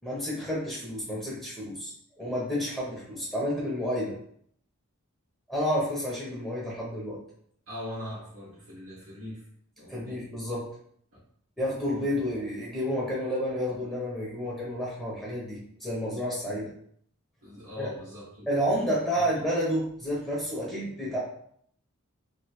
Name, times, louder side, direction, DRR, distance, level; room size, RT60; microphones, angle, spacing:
voice 1, 0.0-1.9 2.2-4.2 5.5-7.2 9.9-10.7 11.6-16.7 17.8-17.9 18.5-21.2, equal, 5° left, -6 dB, 0.8 m, -30 dB
voice 2, 7.7-9.4 9.8-10.2 11.1-11.2 17.4-18.9, left 1 dB, 65° right, -6 dB, 1.1 m, -41 dB
3.1 x 2.7 x 2.9 m, 0.64 s
head